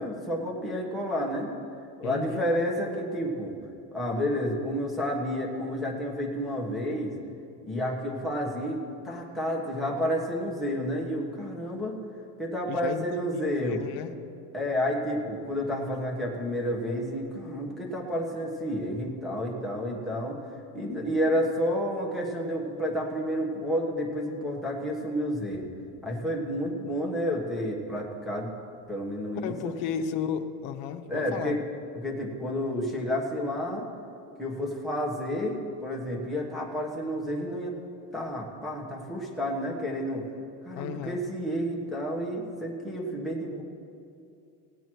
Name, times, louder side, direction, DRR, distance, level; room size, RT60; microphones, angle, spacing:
voice 1, 0.0-1.5 2.0-3.6 3.9-7.1 7.6-12.0 12.4-13.8 14.5-20.4 20.7-25.7 26.0-28.5 28.9-29.7 31.1-31.6 31.9-33.9 34.4-37.7 38.1-40.2 40.6-43.6, equal, ahead, -4 dB, 1.4 m, -30 dB
voice 2, 2.0-2.5 12.6-14.1 29.4-31.6 40.8-41.2, left 8 dB, 65° left, 6 dB, 0.9 m, -34 dB
18.5 x 8.1 x 4.6 m, 2.6 s
cardioid pair, 175°, 36 cm